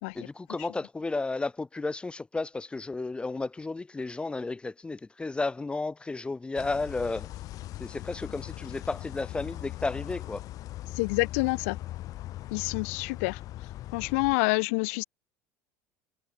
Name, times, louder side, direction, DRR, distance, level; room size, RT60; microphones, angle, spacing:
voice 1, 0.1-7.3 7.8-10.4, left 3 dB, 15° left, 2.6 m, -33 dB
sound 1, 6.5-14.3, left 15 dB, 55° left, 1.6 m, -40 dB
voice 2, 11.0-11.8 12.5-13.4 13.9-15.0, left 29 dB, 80° left, 1.3 m, -27 dB
supercardioid pair, 110°, 7 cm